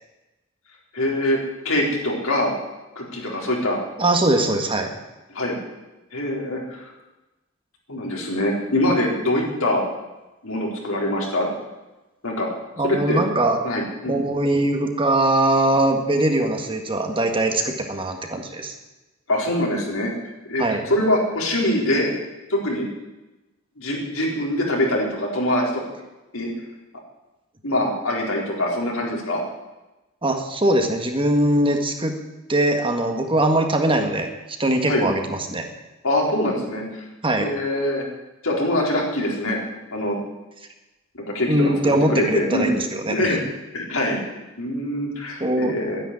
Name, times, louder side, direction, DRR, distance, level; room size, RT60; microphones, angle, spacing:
voice 1, 0.9-1.4 1.6-2.5 3.0-3.8 5.3-5.6 6.1-6.9 7.9-9.8 10.4-11.5 12.2-12.5 12.8-13.2 13.6-14.2 19.3-22.1 22.5-22.9 23.8-25.8 26.3-26.5 27.6-29.4 34.9-35.1 36.0-37.0 37.4-38.0 38.4-39.6 39.9-40.2 41.3-42.7 43.1-43.4 43.7-44.2 44.6-46.0, left 1 dB, 75° left, -2 dB, 4.3 m, -23 dB
voice 2, 4.0-4.9 12.8-13.6 14.0-18.7 20.6-20.8 30.2-32.1 32.5-34.3 34.6-35.7 37.2-37.5 41.5-43.4 45.4-45.7, right 1 dB, 25° right, 4 dB, 1.7 m, -21 dB
11.5 x 10.5 x 9.8 m, 1.1 s
head